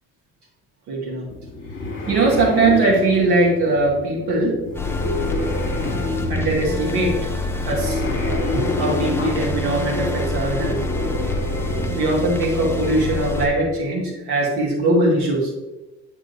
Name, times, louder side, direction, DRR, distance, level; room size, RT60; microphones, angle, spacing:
voice 1, 0.9-1.2 2.1-4.6 6.3-7.2 7.7-8.0 8.5-10.8 11.9-15.5, right 2 dB, 60° right, -3 dB, 2.0 m, -20 dB
sound 1, 1.3-13.1, left 2 dB, 25° left, 1.7 m, -29 dB
sound 2, 4.7-13.5, left 2 dB, 5° left, 1.0 m, -26 dB
7.8 x 3.6 x 4.0 m, 1.0 s
figure-of-eight pair, 55°, 45 cm